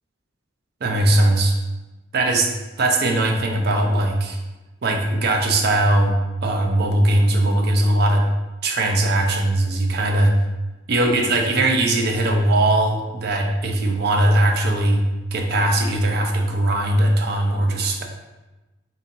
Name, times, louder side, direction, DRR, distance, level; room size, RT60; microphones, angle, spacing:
voice 1, 0.8-1.6 2.1-2.5 2.8-4.4 4.8-8.3 8.6-10.3 10.9-15.0 15.3-18.0, right 1 dB, 55° right, 3 dB, 0.5 m, -19 dB
3.8 x 2.8 x 2.6 m, 1.1 s
head